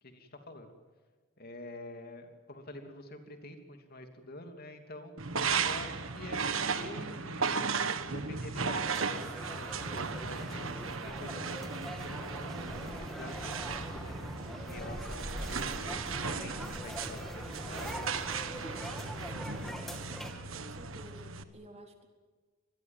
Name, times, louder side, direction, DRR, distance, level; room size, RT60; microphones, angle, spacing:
voice 1, 0.0-0.7 1.4-5.1 5.6-7.7 8.0-8.8 9.6-10.6 11.0-14.2 14.6-15.9 16.3-18.3 18.5-19.8, left 1 dB, 50° left, 5 dB, 3.0 m, -47 dB
sound 1, 5.2-21.4, right 5 dB, 85° right, 1.5 m, -36 dB
sound 2, 8.8-20.3, equal, ahead, 2.6 m, -42 dB
voice 2, 20.5-22.1, right 1 dB, 35° right, 3 dB, 3.9 m, -52 dB
25.5 x 21.5 x 7.6 m, 1.4 s
head